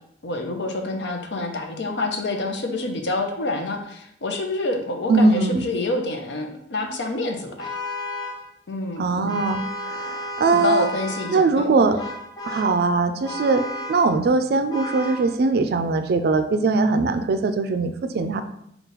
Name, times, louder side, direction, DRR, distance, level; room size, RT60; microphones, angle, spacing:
voice 1, 0.2-7.7 8.7-9.3 10.5-11.7, left 2 dB, 75° left, 3 dB, 0.6 m, -27 dB
voice 2, 5.1-5.6 9.0-9.6 9.8-10.9 11.3-12.0 12.5-13.6 13.9-18.4, right 3 dB, 60° right, 10 dB, 0.3 m, -21 dB
Vehicle horn car horn honking, 7.6-8.5 9.3-11.4 12.0-12.8 13.2-14.1 14.7-15.3, left 1 dB, 25° left, 0.6 m, -32 dB
3.9 x 2.3 x 4.0 m, 0.73 s
head